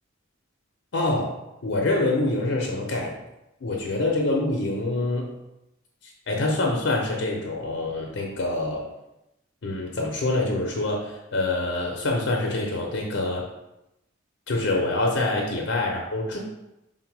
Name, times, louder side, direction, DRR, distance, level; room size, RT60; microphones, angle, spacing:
voice 1, 0.9-1.3 1.6-3.1 3.6-5.3 6.3-8.8 9.6-13.4 14.5-16.4, left 2 dB, 65° left, 0 dB, 0.6 m, -25 dB
3.8 x 2.2 x 4.5 m, 0.91 s
head